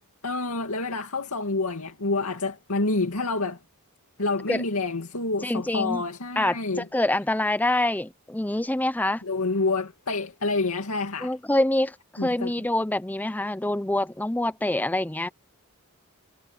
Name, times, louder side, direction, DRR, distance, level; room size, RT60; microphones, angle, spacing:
voice 1, 0.2-3.6 4.2-6.9 9.2-11.3 12.2-12.5, left 3 dB, 90° left, 2.3 m, -28 dB
voice 2, 5.4-6.0 6.4-9.2 11.2-15.3, left 1 dB, 10° left, 0.6 m, -26 dB
head